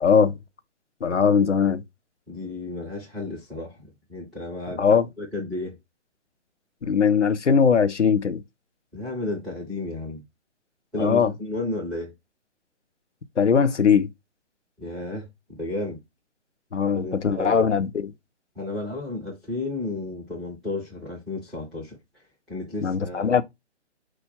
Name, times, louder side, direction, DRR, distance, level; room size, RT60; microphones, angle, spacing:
voice 1, 0.0-0.4 1.0-1.8 4.8-5.1 6.8-8.4 11.0-11.3 13.4-14.1 16.7-18.1 22.8-23.4, left 6 dB, 90° left, 0.7 m, -20 dB
voice 2, 2.3-5.7 8.9-10.2 10.9-12.1 14.8-16.0 16.9-17.7 18.5-22.0 22.5-23.4, left 2 dB, ahead, 0.4 m, -33 dB
4.5 x 2.3 x 4.3 m
figure-of-eight pair, 135°, 34 cm